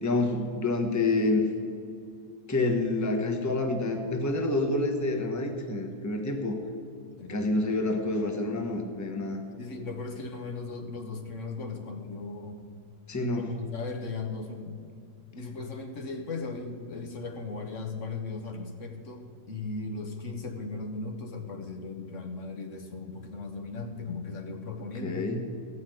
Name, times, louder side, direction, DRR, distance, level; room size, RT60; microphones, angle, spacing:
voice 1, 0.0-1.4 2.5-6.6 7.3-9.4 13.1-13.5 25.0-25.4, left 2 dB, 15° left, 3 dB, 1.0 m, -28 dB
voice 2, 9.6-12.6 13.2-14.8 15.3-25.3, left 3 dB, 65° left, 4 dB, 1.4 m, -37 dB
15.0 x 5.7 x 9.0 m, 2.2 s
omnidirectional pair, 1.5 m